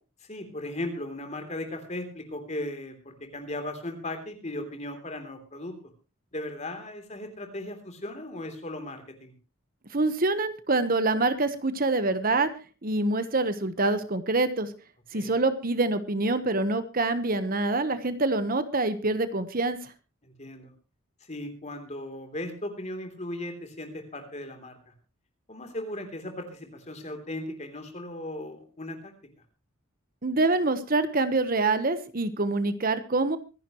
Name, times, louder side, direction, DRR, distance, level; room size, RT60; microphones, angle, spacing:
voice 1, 0.3-5.8 6.3-9.3 15.1-15.3 20.2-20.7 21.3-24.9 25.5-29.1, left 1 dB, 35° left, 5 dB, 3.2 m, -37 dB
voice 2, 9.9-12.5 12.8-14.7 15.1-19.8 30.2-33.4, right 2 dB, 45° right, 11 dB, 1.1 m, -25 dB
24.5 x 11.0 x 3.1 m, 0.33 s
head